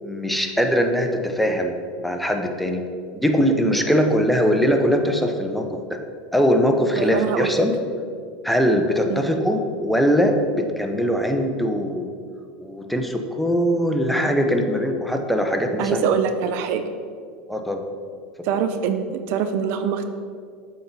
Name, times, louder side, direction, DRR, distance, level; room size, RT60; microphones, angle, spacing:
voice 1, 0.0-2.8 3.1-6.0 6.3-7.7 8.4-12.1 12.6-16.0 17.5-17.8, equal, ahead, 4 dB, 0.8 m, -21 dB
voice 2, 7.0-7.6 9.1-9.3 15.8-16.8 18.4-20.1, right 7 dB, 55° right, 8 dB, 0.5 m, -24 dB
7.7 x 4.2 x 5.3 m, 2.1 s
hypercardioid pair, 95°, 4 cm